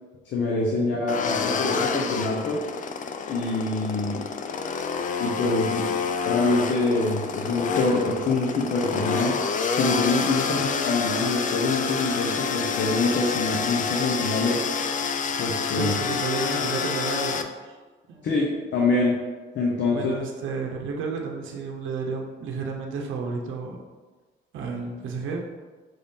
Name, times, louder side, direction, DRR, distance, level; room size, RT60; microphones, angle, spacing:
voice 1, 0.2-2.6 3.3-4.3 5.2-5.9 6.3-14.9 15.4-15.9 18.2-19.2 19.5-20.1, left 3 dB, 65° left, -2 dB, 0.8 m, -25 dB
sound 1, 1.1-17.4, left 5 dB, 40° left, 0.4 m, -28 dB
voice 2, 15.6-17.8 18.1-18.3 19.9-23.8 24.5-25.4, right 4 dB, 80° right, 1 dB, 0.7 m, -32 dB
5.5 x 2.7 x 3.6 m, 1.3 s
cardioid pair, 90°, 20 cm